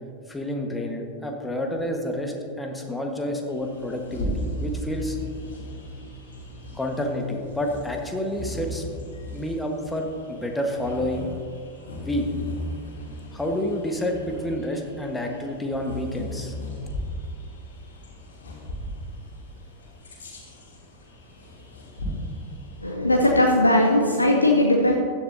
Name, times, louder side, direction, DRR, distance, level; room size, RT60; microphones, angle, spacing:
voice 1, 0.3-5.2 6.7-8.8 9.3-11.3 12.0-12.3 13.3-16.5, left 1 dB, 5° left, 2 dB, 1.4 m, -29 dB
Bird vocalization bird call bird song, 3.5-22.9, equal, 65° left, 2.8 m, -37 dB
voice 2, 22.8-24.9, left 1 dB, 85° left, 1 dB, 0.8 m, -19 dB
15.5 x 10.5 x 2.7 m, 2.4 s
figure-of-eight pair, 90°, 0 cm